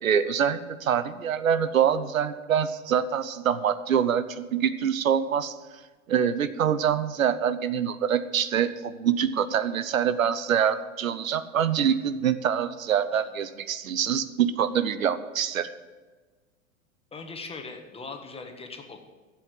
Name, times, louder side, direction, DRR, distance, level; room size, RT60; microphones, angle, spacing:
voice 1, 0.0-5.5 6.1-15.7, right 8 dB, 80° right, 13 dB, 0.8 m, -25 dB
voice 2, 17.1-19.0, left 4 dB, 15° left, 4 dB, 1.5 m, -40 dB
12.0 x 7.7 x 7.2 m, 1.3 s
hypercardioid pair, 100°, 40 cm